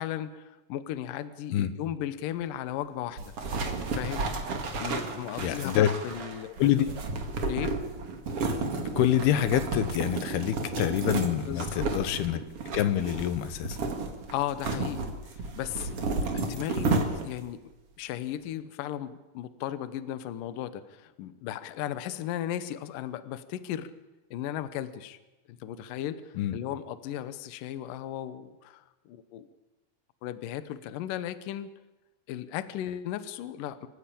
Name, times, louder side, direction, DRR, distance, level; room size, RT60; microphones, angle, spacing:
voice 1, 0.0-3.3 3.9-4.2 4.7-6.8 7.5-7.8 11.5-11.9 14.3-16.0 16.3-17.6 18.0-23.9 24.3-25.2 25.6-29.5 30.2-31.7 32.3-33.9, left 11 dB, 70° left, 13 dB, 2.4 m, -36 dB
sound 1, 3.2-17.5, right 3 dB, 45° right, 2.7 m, -32 dB
voice 2, 5.4-5.9 6.6-6.9 9.0-12.4 12.7-13.8 26.4-26.5, left 11 dB, 85° left, 12 dB, 3.1 m, -26 dB
26.0 x 15.0 x 8.6 m, 1.1 s
omnidirectional pair, 4.4 m